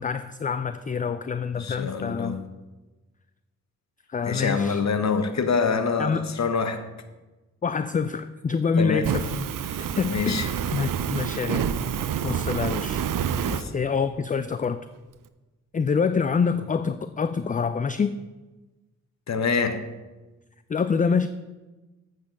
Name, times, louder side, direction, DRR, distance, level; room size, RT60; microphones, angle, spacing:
voice 1, 0.0-2.4 4.1-4.8 6.0-6.3 7.6-9.5 10.0-11.7 12.2-13.0 13.7-14.8 15.7-18.2 20.7-21.3, left 5 dB, 20° left, 0.4 m, -26 dB
voice 2, 1.5-2.5 4.2-6.8 8.8-9.1 9.7-10.5 13.5-13.7 19.3-19.8, left 5 dB, 45° left, 1.1 m, -26 dB
Fire, 9.0-13.6, right 8 dB, 60° right, 0.7 m, -28 dB
8.1 x 6.5 x 5.3 m
hypercardioid pair, 40°, 37 cm